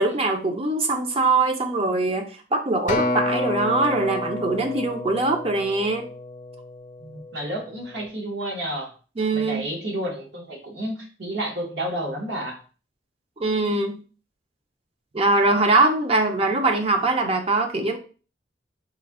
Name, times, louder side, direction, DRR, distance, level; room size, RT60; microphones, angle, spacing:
voice 1, 0.0-6.1 9.2-9.6 13.4-14.0 15.1-18.0, right 2 dB, 35° right, 5 dB, 0.5 m, -22 dB
Acoustic guitar, 2.9-7.3 7.9-8.1, left 2 dB, 45° left, 0.6 m, -29 dB
voice 2, 7.0-8.9 9.3-12.6, right 1 dB, 65° right, 0 dB, 1.1 m, -31 dB
3.2 x 2.6 x 3.6 m, 0.36 s
head